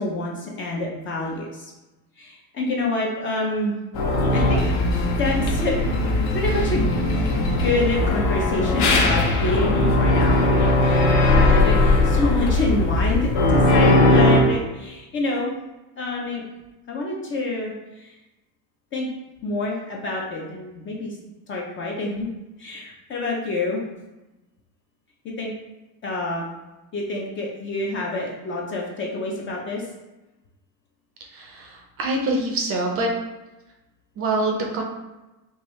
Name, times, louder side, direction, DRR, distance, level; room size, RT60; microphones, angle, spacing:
voice 1, 0.0-1.7 2.2-3.8 4.3-4.6 5.2-5.8 6.3-6.9 7.2-15.5 16.0-16.4 16.9-18.1 18.9-19.1 19.4-21.2 21.5-22.3 22.6-23.8 25.4-25.5 26.0-26.5 26.9-29.8, left 2 dB, 30° left, -2 dB, 0.4 m, -27 dB
sound 1, 3.9-14.4, left 2 dB, 70° left, 1.0 m, -19 dB
voice 2, 31.3-33.1 34.2-34.8, right 2 dB, 30° right, 1 dB, 0.5 m, -25 dB
4.6 x 2.6 x 3.0 m, 1.0 s
cardioid pair, 160°, 45 cm